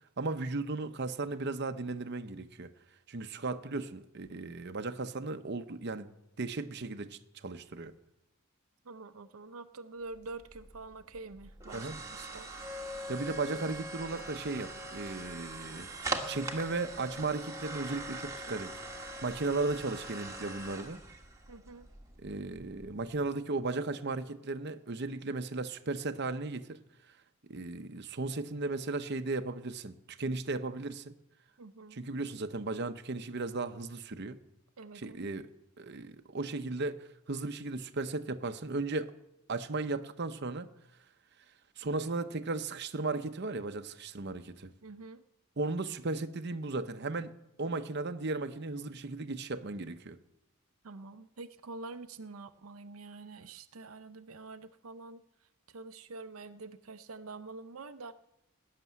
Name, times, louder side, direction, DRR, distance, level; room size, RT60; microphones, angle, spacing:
voice 1, 0.2-2.7 3.1-6.1 6.4-7.9 11.7-12.0 13.1-15.9 16.3-18.7 19.2-21.0 22.2-26.8 27.5-31.1 31.9-34.4 34.9-35.5 35.8-39.1 39.5-40.7 41.8-44.7 45.6-47.3 47.6-50.2, right 3 dB, 55° right, 0.8 m, -36 dB
voice 2, 8.8-12.5 21.5-21.9 31.6-32.0 34.8-35.2 44.8-45.2 50.8-55.2 55.7-58.1, right 3 dB, 85° right, 0.6 m, -46 dB
sound 1, 10.1-23.2, right 2 dB, 15° right, 1.5 m, -42 dB
18.0 x 6.7 x 9.4 m
head